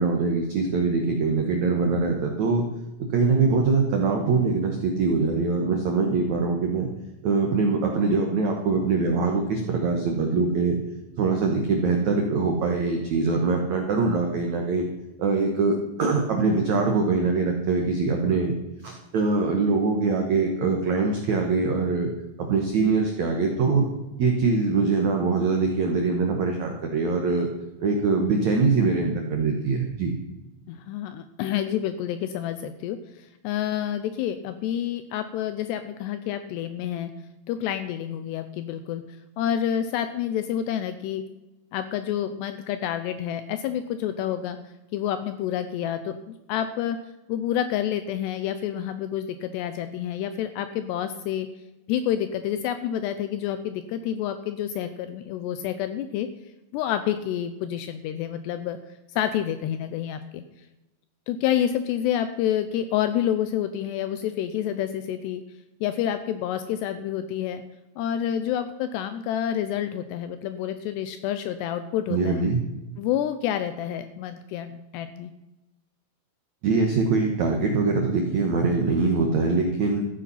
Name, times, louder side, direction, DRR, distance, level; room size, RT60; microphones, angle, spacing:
voice 1, 0.0-2.6 3.1-6.9 7.2-10.8 11.2-14.9 15.2-18.6 18.8-22.1 22.4-23.9 24.2-27.5 27.8-30.1 72.1-72.6 76.6-80.0, right 4 dB, 75° right, 2 dB, 1.6 m, -23 dB
voice 2, 30.7-37.1 37.5-39.0 39.4-41.2 41.7-44.6 44.9-47.0 47.3-51.5 51.9-56.3 56.7-58.8 59.2-60.4 61.3-65.4 65.8-67.6 68.0-72.4 73.0-75.3, left 10 dB, 85° left, 10 dB, 2.5 m, -28 dB
14.5 x 8.3 x 5.7 m, 0.99 s
omnidirectional pair, 5.4 m